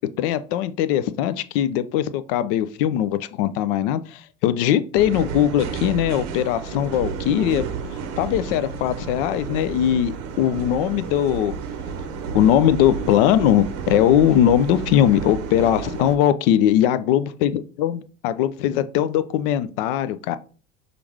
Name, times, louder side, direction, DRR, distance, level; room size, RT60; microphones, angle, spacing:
voice 1, 0.2-11.6 12.3-20.4, left 11 dB, 45° left, 0.4 m, -20 dB
sound 1, 4.9-16.2, right 6 dB, 40° right, 0.7 m, -31 dB
5.7 x 2.5 x 3.2 m
figure-of-eight pair, 70°, 40 cm